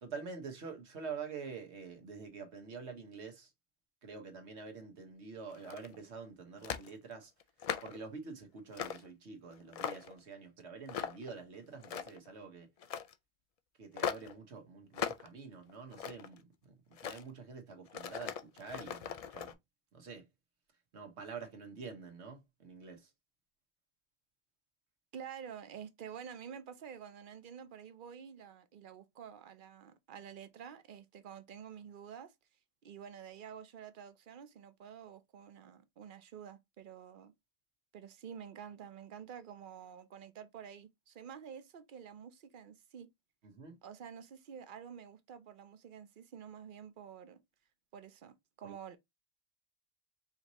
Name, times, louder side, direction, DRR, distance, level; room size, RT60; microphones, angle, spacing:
voice 1, 0.0-3.5 4.0-7.3 7.8-12.7 13.8-16.5 16.9-19.5 19.9-20.2 20.9-23.1 43.4-43.8 48.6-48.7, right 5 dB, 85° right, 1.4 m, -47 dB
sound 1, 5.5-6.0 6.6-6.9 7.4-8.0 8.7-9.1 9.5-10.2 10.9-11.3 11.7-12.3 12.8-13.1 14.0-14.3 14.9-15.3 15.7-16.4 16.9-17.2 17.9-19.5, left 8 dB, 60° left, 0.4 m, -39 dB
voice 2, 25.1-32.3 32.8-37.3 37.9-43.1 43.8-47.4 47.9-49.0, right 8 dB, 55° right, 0.7 m, -49 dB
5.0 x 2.7 x 3.0 m
omnidirectional pair, 1.1 m